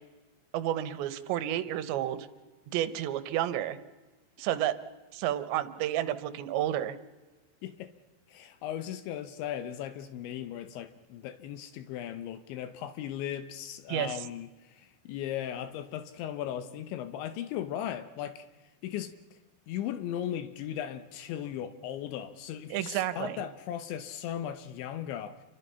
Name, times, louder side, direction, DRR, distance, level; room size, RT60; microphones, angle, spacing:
voice 1, 0.5-2.3 2.7-3.8 4.4-4.7 5.1-7.0 13.9-14.2 22.7-23.4, right 12 dB, 75° right, 3.1 m, -31 dB
voice 2, 7.6-7.9 8.3-18.5 18.8-19.1 19.7-25.4, left 10 dB, 80° left, 3.3 m, -37 dB
28.5 x 24.5 x 5.7 m
omnidirectional pair, 5.4 m